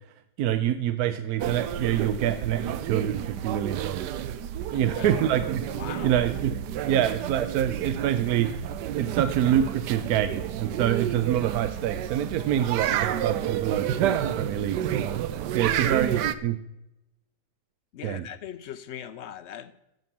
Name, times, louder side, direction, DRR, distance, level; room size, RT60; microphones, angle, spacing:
voice 1, 0.4-4.2 4.7-5.7 6.0-6.6 6.8-8.6 9.0-15.1 15.5-16.6 18.0-18.3, right 10 dB, 70° right, 11 dB, 1.0 m, -26 dB
sound 1, 1.4-16.3, right 10 dB, 85° right, 1.3 m, -30 dB
voice 2, 4.7-5.2 5.8-6.1 15.6-16.0 17.9-19.7, left 9 dB, 70° left, 13 dB, 0.6 m, -40 dB
14.5 x 5.4 x 7.1 m, 0.88 s
omnidirectional pair, 1.8 m